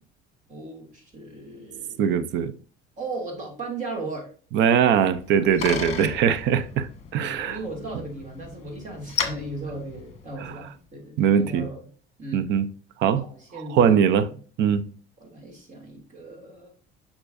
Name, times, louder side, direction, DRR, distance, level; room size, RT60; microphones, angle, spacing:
voice 1, 0.5-2.1 3.0-4.3 6.0-6.2 6.6-6.7 7.2-11.8 12.2-12.4 13.2-14.0 15.2-16.7, right 2 dB, 40° right, 2.3 m, -37 dB
voice 2, 2.0-2.5 4.5-7.6 10.4-10.5 11.2-11.7 12.3-12.7 13.0-13.3 13.7-14.3 14.6-14.9, right 8 dB, 65° right, 0.6 m, -21 dB
Bicycle, 4.9-10.7, left 7 dB, 35° left, 1.3 m, -35 dB
6.9 x 5.5 x 2.5 m
cardioid pair, 130°, 20 cm